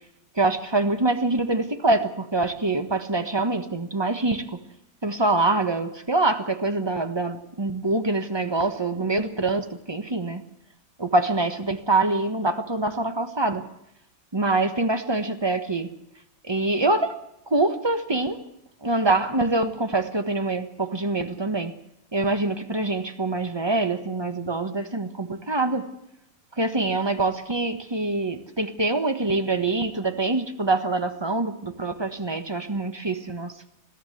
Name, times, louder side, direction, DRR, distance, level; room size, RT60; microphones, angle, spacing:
voice 1, 0.4-4.6 5.0-10.4 11.0-13.6 14.3-15.9 16.4-17.1 17.5-18.4 18.8-21.7 22.1-25.8 26.6-33.5, right 2 dB, 15° right, 9 dB, 1.0 m, -25 dB
22.0 x 15.0 x 8.0 m, 0.83 s
omnidirectional pair, 2.3 m